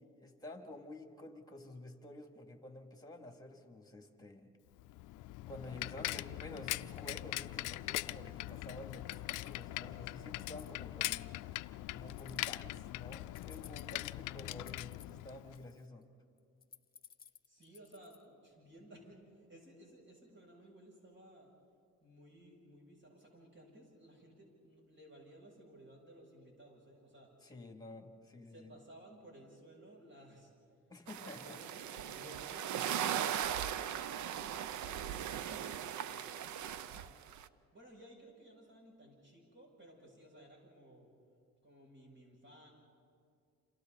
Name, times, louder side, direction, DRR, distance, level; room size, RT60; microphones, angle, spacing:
voice 1, 0.0-4.5 5.5-11.3 11.9-16.1 27.4-28.7 30.9-31.6, left 1 dB, 15° left, 4 dB, 2.8 m, -50 dB
Bicycle, 4.8-15.7, left 17 dB, 85° left, 0.4 m, -41 dB
sound 1, 8.5-8.6 9.1-9.6 10.2-10.7 12.1-12.6 13.3-14.2 14.6-15.2 15.5-16.0 16.4-18.2, left 7 dB, 30° left, 0.8 m, -57 dB
voice 2, 17.3-21.5 22.0-27.3 28.5-30.5 31.2-32.7 33.0-37.2 37.7-41.1 41.6-42.7, right 1 dB, 40° right, -2 dB, 7.9 m, -57 dB
sound 2, 31.1-37.5, right 10 dB, 75° right, 0.8 m, -39 dB
29.0 x 27.5 x 4.2 m, 2.3 s
cardioid pair, 90°, 30 cm